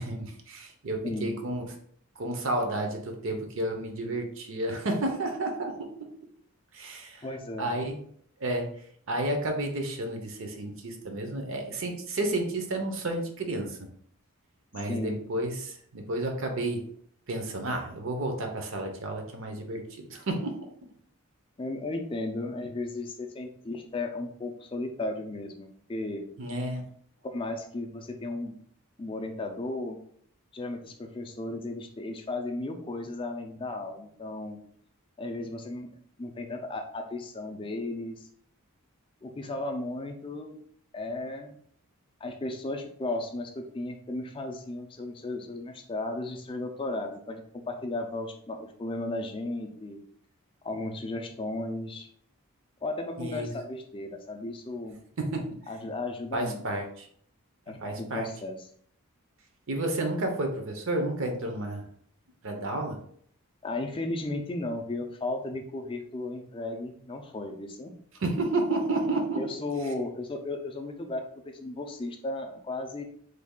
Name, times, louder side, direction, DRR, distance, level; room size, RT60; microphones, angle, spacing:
voice 1, 0.0-1.6 2.2-5.9 6.7-7.2 7.6-8.0 8.4-8.7 9.1-13.8 14.7-16.8 17.3-20.5 26.4-26.8 53.2-53.5 55.2-55.5 56.3-57.1 57.8-58.3 59.7-61.8 62.4-63.0 68.2-69.4, right 2 dB, 60° right, 4 dB, 0.6 m, -31 dB
voice 2, 1.0-1.4 7.2-7.8 14.9-15.2 21.6-26.2 27.3-28.6 29.0-30.0 30.5-34.6 35.2-35.9 36.2-38.3 39.2-40.6 40.9-41.6 42.2-50.0 50.6-52.1 52.8-55.0 55.7-56.6 57.7-58.7 63.6-67.9 69.3-73.0, left 2 dB, 25° left, 4 dB, 0.4 m, -35 dB
3.2 x 2.3 x 3.6 m, 0.62 s
head